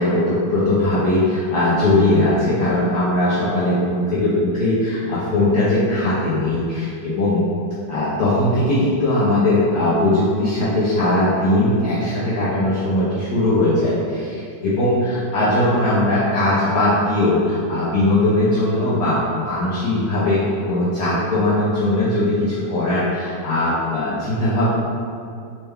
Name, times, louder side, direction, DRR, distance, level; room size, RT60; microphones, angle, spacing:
voice 1, 0.0-7.4 7.9-24.6, left 1 dB, 65° left, -11 dB, 1.2 m, -19 dB
4.3 x 2.2 x 3.4 m, 2.3 s
omnidirectional pair, 2.1 m